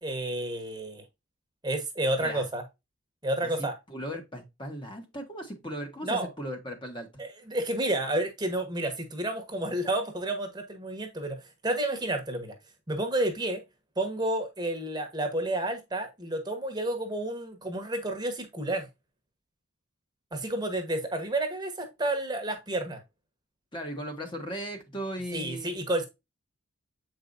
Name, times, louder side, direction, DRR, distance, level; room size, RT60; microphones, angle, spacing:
voice 1, 0.0-1.0 1.6-2.6 3.2-3.8 6.0-6.3 7.2-12.5 12.9-13.6 14.0-18.9 20.3-23.0 25.3-26.1, right 1 dB, 20° right, 1.1 m, -30 dB
voice 2, 3.9-7.1 23.7-25.7, equal, 25° left, 1.2 m, -37 dB
7.6 x 4.7 x 2.6 m
head